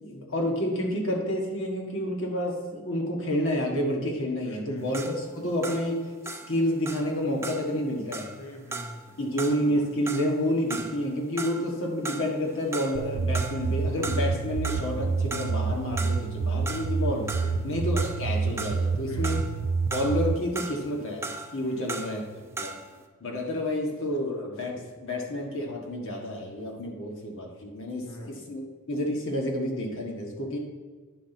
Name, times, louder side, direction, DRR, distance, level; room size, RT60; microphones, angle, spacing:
voice 1, 0.0-6.0 6.5-8.3 9.2-17.4 17.6-19.5 19.9-22.8 23.2-28.6 28.9-30.6, left 1 dB, 60° left, 0 dB, 1.6 m, -29 dB
voice 2, 4.5-4.9 8.4-9.2 17.3-17.7 19.1-19.5 21.6-22.0 28.0-28.4, equal, 80° left, 2 dB, 1.4 m, -43 dB
sound 1, 4.8-11.8 12.1-13.1 13.3-14.4 14.6-23.0, right 3 dB, 10° right, 0.6 m, -38 dB
sound 2, 12.9-20.3, right 4 dB, 85° right, 0.5 m, -28 dB
10.0 x 4.0 x 5.9 m, 1.4 s
head